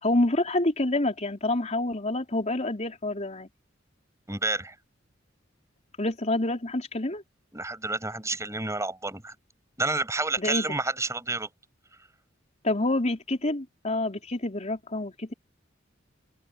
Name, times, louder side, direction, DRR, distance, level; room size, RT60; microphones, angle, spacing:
voice 1, 0.0-3.5 6.0-7.2 10.4-10.7 12.6-15.3, left 2 dB, 35° left, 4.2 m, -27 dB
voice 2, 4.3-4.8 7.5-9.3 9.8-11.5, right 2 dB, 15° right, 6.8 m, -29 dB
open air
head